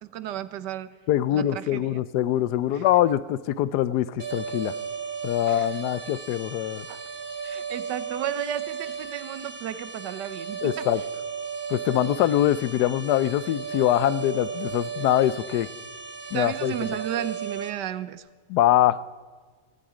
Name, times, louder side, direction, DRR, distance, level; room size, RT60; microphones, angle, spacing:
voice 1, 0.0-1.0 1.3-2.0 2.7-2.8 5.5-5.7 6.9-7.0 7.4-10.9 16.3-18.3, right 11 dB, 90° right, 14 dB, 1.4 m, -33 dB
voice 2, 1.1-4.7 5.2-6.9 10.6-11.0 11.7-15.7 16.3-16.7 18.5-19.0, left 12 dB, 75° left, 17 dB, 1.1 m, -23 dB
sound 1, 4.2-17.7, right 6 dB, 40° right, 1.5 m, -35 dB
18.0 x 14.5 x 5.0 m, 1.5 s
omnidirectional pair, 1.8 m